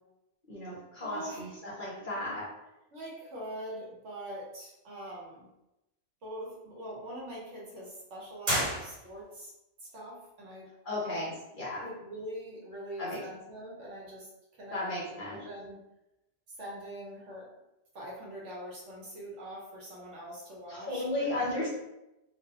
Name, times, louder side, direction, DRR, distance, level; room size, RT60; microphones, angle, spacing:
voice 1, 0.5-2.5 10.8-11.8 13.0-13.2 14.7-15.4 20.7-21.7, left 1 dB, 45° left, -6 dB, 0.8 m, -35 dB
voice 2, 1.0-1.5 2.9-5.5 6.2-9.5 9.9-10.7 11.1-11.2 11.8-14.3 14.6-15.8 16.6-17.5 17.9-21.6, equal, 70° right, -4 dB, 1.1 m, -43 dB
sound 1, 8.5-9.4, equal, 45° right, 1.1 m, -31 dB
2.6 x 2.1 x 2.8 m, 0.91 s
omnidirectional pair, 1.3 m